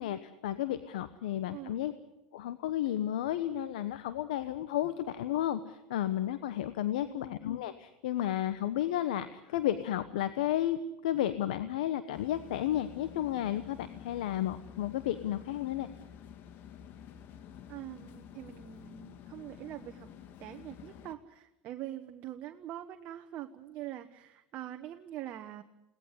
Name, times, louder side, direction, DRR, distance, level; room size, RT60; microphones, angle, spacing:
voice 1, 0.0-1.9 2.3-15.9, left 12 dB, 80° left, 12 dB, 1.1 m, -32 dB
voice 2, 6.9-7.3 17.7-20.1 20.4-25.6, right 13 dB, 50° right, 7 dB, 1.2 m, -44 dB
sound 1, 12.1-21.1, left 9 dB, 50° left, 1.8 m, -50 dB
22.0 x 18.0 x 9.6 m, 0.93 s
hypercardioid pair, 95°, 4 cm